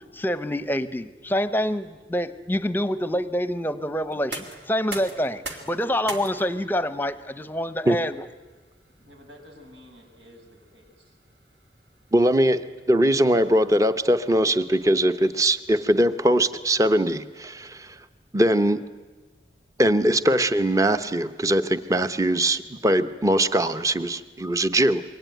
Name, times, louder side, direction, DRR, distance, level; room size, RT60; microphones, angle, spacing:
voice 1, 0.0-8.2, equal, 10° left, 13 dB, 0.8 m, -26 dB
sound 1, 4.1-15.9, right 3 dB, 70° right, 2.9 m, -45 dB
voice 2, 9.0-11.2, left 1 dB, 85° right, 3 dB, 6.3 m, -50 dB
voice 3, 12.1-17.9 18.3-18.8 19.8-25.0, right 1 dB, 20° right, 11 dB, 0.8 m, -21 dB
27.0 x 23.0 x 9.2 m, 1.2 s
head